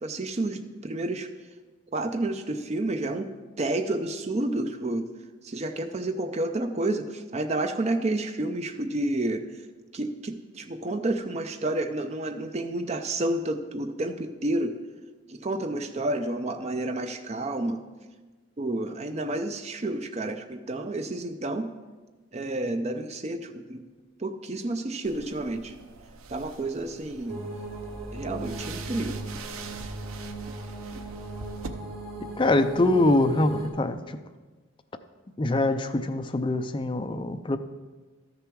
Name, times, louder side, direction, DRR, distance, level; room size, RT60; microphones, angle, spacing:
voice 1, 0.0-1.3 1.9-3.3 3.6-5.1 5.4-9.5 9.9-14.8 15.3-17.8 18.6-21.7 22.3-23.8 24.2-25.8 26.3-27.4 28.1-29.2, right 2 dB, 30° right, 7 dB, 0.5 m, -30 dB
sound 1, 25.0-31.7, right 4 dB, 85° right, 0.6 m, -44 dB
sound 2, 27.3-33.7, right 1 dB, 60° right, 2.4 m, -37 dB
voice 2, 32.4-34.2 35.4-37.6, left 2 dB, 25° left, 8 dB, 0.4 m, -24 dB
13.0 x 6.9 x 4.7 m, 1.3 s
head